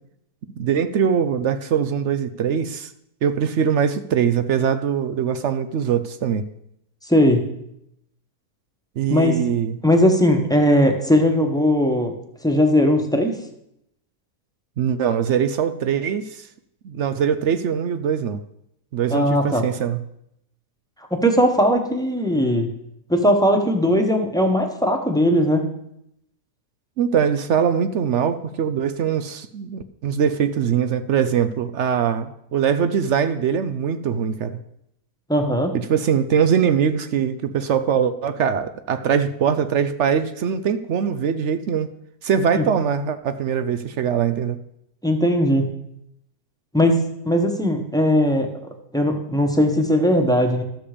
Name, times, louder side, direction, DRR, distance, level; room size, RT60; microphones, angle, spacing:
voice 1, 0.6-2.9 3.2-6.4 9.0-9.8 14.8-16.5 16.8-18.4 18.9-20.0 27.0-34.6 35.9-41.9 42.2-44.6, right 7 dB, 65° right, 10 dB, 0.7 m, -22 dB
voice 2, 7.1-7.5 9.1-9.4 9.8-12.1 12.4-13.4 19.1-19.7 21.2-22.7 23.1-25.7 35.3-35.7 42.6-42.7 45.0-45.6 46.7-47.0 47.2-48.5 48.9-50.6, equal, 5° left, 3 dB, 1.0 m, -18 dB
13.0 x 7.0 x 5.0 m, 0.79 s
omnidirectional pair, 1.7 m